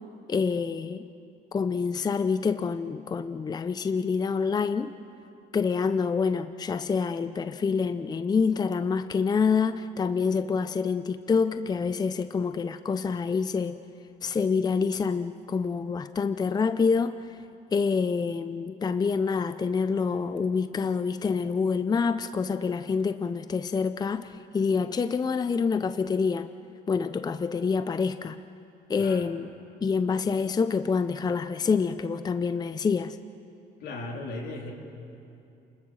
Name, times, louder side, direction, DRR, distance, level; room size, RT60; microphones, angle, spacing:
voice 1, 0.3-1.1 1.5-4.9 5.5-13.8 14.2-17.4 17.7-26.5 26.9-28.4 28.9-29.5 29.8-33.2, left 5 dB, 25° left, 11 dB, 0.6 m, -27 dB
voice 2, 29.0-29.3 33.8-34.7, left 2 dB, 75° left, 0 dB, 3.8 m, -36 dB
29.5 x 21.0 x 6.4 m, 2.6 s
cardioid pair, 110°, 17 cm